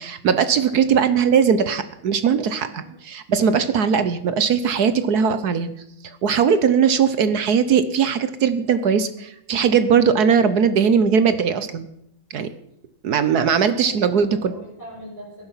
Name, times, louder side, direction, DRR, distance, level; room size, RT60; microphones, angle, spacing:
voice 1, 0.0-5.7 6.0-11.9 12.3-12.5 13.0-14.5, right 7 dB, 60° right, 12 dB, 1.1 m, -19 dB
voice 2, 13.3-15.5, equal, 10° right, -6 dB, 6.9 m, -42 dB
18.0 x 10.5 x 5.7 m, 0.79 s
omnidirectional pair, 2.3 m